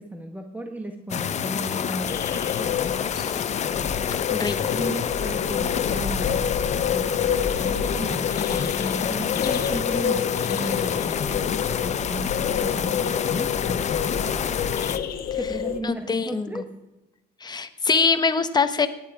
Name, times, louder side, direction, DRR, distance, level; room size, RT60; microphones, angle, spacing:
voice 1, 0.0-2.8 4.8-6.5 6.9-14.6 15.3-16.8, right 1 dB, 10° right, 5 dB, 1.3 m, -35 dB
sound 1, 1.1-15.0, left 8 dB, 40° left, 0.9 m, -28 dB
sound 2, 2.1-15.8, left 8 dB, 60° left, 1.4 m, -28 dB
voice 2, 4.3-4.8 15.8-16.6 17.4-18.9, left 5 dB, 25° left, 9 dB, 1.3 m, -23 dB
17.5 x 10.5 x 4.9 m, 0.97 s
cardioid pair, 110°, 17 cm